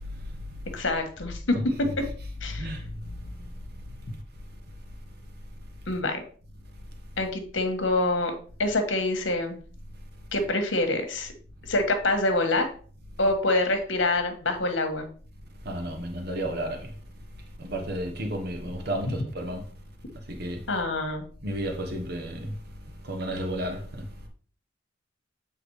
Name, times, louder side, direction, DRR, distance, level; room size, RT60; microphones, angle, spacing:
voice 1, 0.7-1.6 2.4-2.7 5.9-6.2 7.2-8.3 8.6-9.6 10.3-11.3 11.7-12.7 13.2-15.1 20.7-21.2, left 2 dB, 70° left, 1.5 m, -26 dB
voice 2, 1.5-1.9 2.6-2.8 15.6-16.9 17.6-19.6 20.3-20.6 21.4-22.5 23.0-24.0, right 1 dB, 55° right, 1.2 m, -32 dB
8.2 x 3.5 x 4.8 m
head